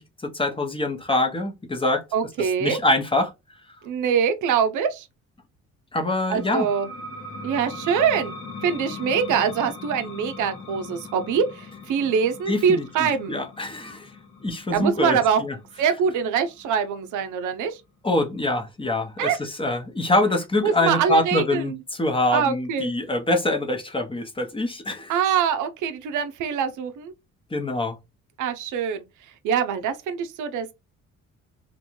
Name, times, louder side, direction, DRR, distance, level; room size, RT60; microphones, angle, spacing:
voice 1, 0.0-2.0 2.4-3.3 5.9-6.7 12.5-14.1 14.4-15.6 18.0-25.2 27.5-28.0, left 1 dB, 15° left, 0.6 m, -25 dB
voice 2, 2.1-2.8 3.8-5.1 6.3-6.9 7.4-8.3 8.6-13.4 14.7-15.4 15.8-17.8 19.2-19.4 20.6-21.8 22.3-22.9 25.1-27.1 28.4-29.1 29.4-30.7, right 7 dB, 80° right, 0.5 m, -24 dB
sound 1, 6.4-17.6, left 3 dB, 85° left, 1.3 m, -40 dB
2.6 x 2.2 x 2.9 m
cardioid pair, 90°, 30 cm